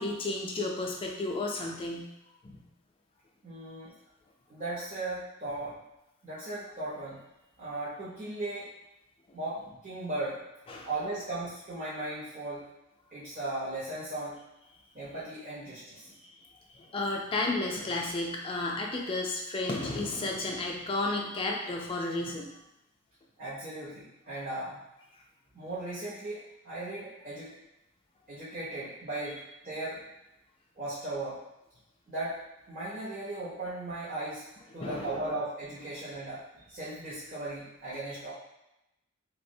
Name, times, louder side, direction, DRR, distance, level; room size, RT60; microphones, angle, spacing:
voice 1, 0.0-2.1 2.4-2.6 10.7-10.9 16.2-16.3 16.7-22.5 34.7-35.2, left 2 dB, 25° left, 0 dB, 0.3 m, -32 dB
voice 2, 3.4-3.9 4.5-5.8 6.2-7.2 7.6-8.7 9.3-10.4 10.8-12.7 13.1-14.4 14.9-16.1 23.4-24.8 25.5-27.5 28.3-29.4 29.6-30.0 30.8-31.4 32.1-32.4 32.7-34.5 34.7-38.3, right 2 dB, 35° right, -10 dB, 0.6 m, -37 dB
3.4 x 2.0 x 2.6 m, 0.90 s
head